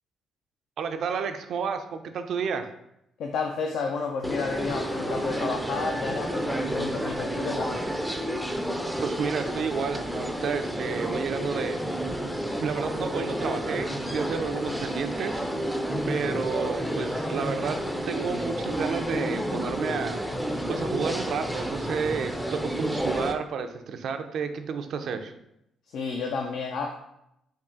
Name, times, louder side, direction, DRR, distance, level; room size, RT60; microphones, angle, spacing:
voice 1, 0.8-2.7 9.0-11.8 12.6-15.4 16.1-17.8 18.1-20.2 20.7-25.3, right 6 dB, 65° right, 8 dB, 0.4 m, -31 dB
voice 2, 3.2-7.8 14.5-14.8 25.9-27.0, left 4 dB, 75° left, 3 dB, 0.4 m, -31 dB
sound 1, 4.2-23.3, equal, ahead, 0.4 m, -30 dB
3.5 x 2.4 x 3.8 m, 0.81 s
cardioid pair, 90°, 0 cm